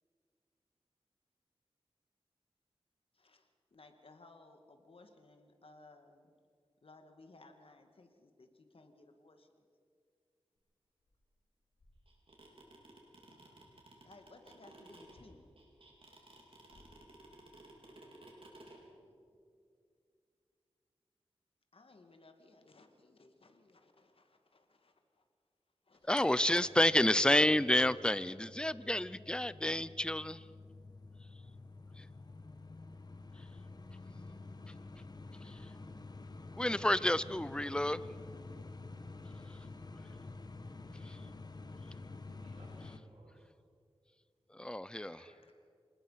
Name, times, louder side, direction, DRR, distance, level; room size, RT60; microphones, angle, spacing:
voice 1, 3.1-6.3 6.8-9.7 14.0-15.5 21.7-25.3 25.8-26.3, left 2 dB, 65° left, 6 dB, 2.2 m, -60 dB
sound 1, 10.6-10.7 11.0-12.5 15.0-15.5 16.3-17.6, left 1 dB, 85° left, 5.3 m, -65 dB
sound 2, 12.1-18.8, right 2 dB, 65° right, 4.5 m, -56 dB
voice 2, 18.8-19.1 42.2-43.5 44.9-45.5, right 1 dB, 90° right, -1 dB, 6.3 m, -62 dB
voice 3, 26.1-30.4 32.0-32.1 35.4-35.6 36.6-38.0 41.0-41.2 44.5-45.2, left 1 dB, 10° left, 17 dB, 0.6 m, -30 dB
sound 3, 26.2-43.0, left 3 dB, 40° left, 1.3 m, -49 dB
26.5 x 19.5 x 5.8 m, 2.3 s
wide cardioid pair, 65°, 10 cm